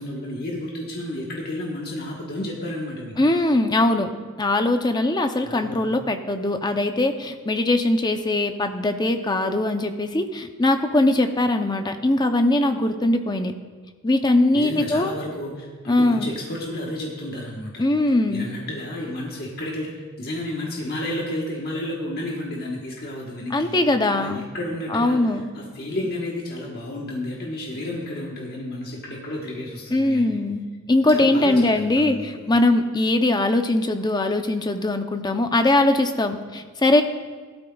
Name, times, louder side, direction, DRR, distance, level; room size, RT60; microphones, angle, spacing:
voice 1, 0.0-3.1 5.4-5.8 14.5-15.5 15.8-17.7 18.3-19.9 20.2-23.8 24.1-25.1 25.5-30.4 31.1-31.5 32.0-32.2, left 1 dB, 45° left, -3 dB, 1.3 m, -31 dB
voice 2, 3.2-4.1 4.4-13.5 14.0-15.1 15.9-16.3 17.8-18.5 23.5-24.5 24.9-25.5 29.9-37.0, left 2 dB, 20° left, 6 dB, 0.6 m, -21 dB
17.0 x 12.5 x 2.4 m, 1.5 s
head